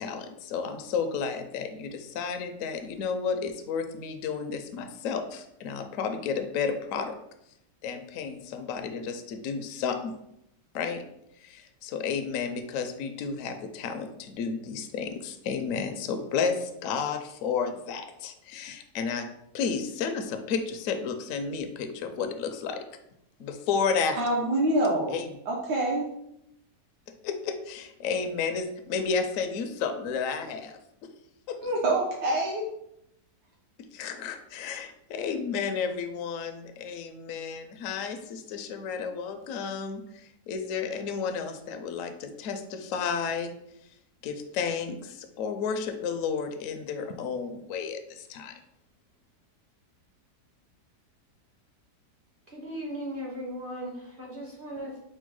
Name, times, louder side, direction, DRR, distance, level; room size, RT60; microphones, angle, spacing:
voice 1, 0.0-7.1 7.8-10.2 10.7-11.0 11.4-19.3 19.5-22.8 23.4-24.2 25.1-25.3 27.1-31.1 31.5-31.6 33.8-43.5 44.2-48.5, left 6 dB, 70° left, 6 dB, 0.7 m, -32 dB
voice 2, 24.2-25.1 25.5-26.1 31.6-32.7, right 1 dB, 75° right, -1 dB, 1.4 m, -26 dB
voice 3, 52.5-55.0, equal, 45° right, -3 dB, 0.7 m, -37 dB
4.4 x 2.2 x 4.6 m, 0.77 s
omnidirectional pair, 1.9 m